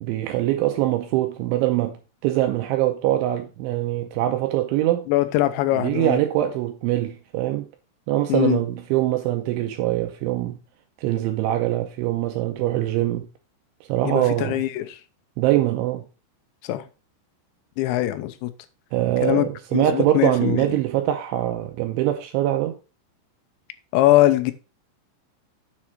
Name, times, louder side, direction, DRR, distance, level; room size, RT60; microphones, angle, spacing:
voice 1, 0.0-2.0 2.2-5.1 5.7-7.7 8.1-10.6 11.0-13.3 13.9-14.6 15.4-16.1 18.9-22.8, right 14 dB, 80° right, 2.9 m, -23 dB
voice 2, 5.1-6.2 8.3-8.6 14.0-15.0 16.6-16.8 17.8-18.5 19.2-19.5 19.7-20.7 23.9-24.5, left 15 dB, 75° left, 2.9 m, -21 dB
7.6 x 6.2 x 4.9 m
omnidirectional pair, 5.7 m